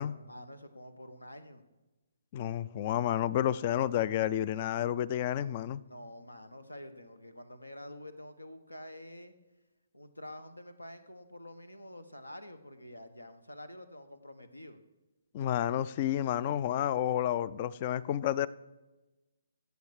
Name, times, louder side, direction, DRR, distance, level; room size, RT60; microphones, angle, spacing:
voice 1, 0.3-1.6 5.9-9.3 9.9-14.8, left 1 dB, 85° left, 11 dB, 1.2 m, -48 dB
voice 2, 2.3-5.8 15.3-18.5, left 11 dB, 35° left, 20 dB, 0.4 m, -30 dB
16.0 x 7.0 x 4.8 m, 1.1 s
figure-of-eight pair, 135°, 0 cm